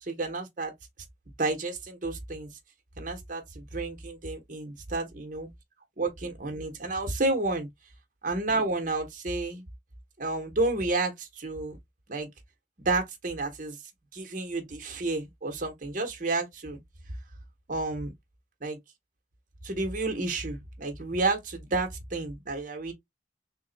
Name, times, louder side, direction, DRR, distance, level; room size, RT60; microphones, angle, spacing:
voice 1, 0.0-0.7 1.4-2.5 3.0-5.5 6.0-7.7 8.2-9.6 10.2-11.8 12.1-12.3 12.8-13.8 14.1-16.8 17.7-18.1 18.6-18.8 19.6-22.9, right 2 dB, 45° right, 0.9 m, -31 dB
3.6 x 2.1 x 3.8 m
head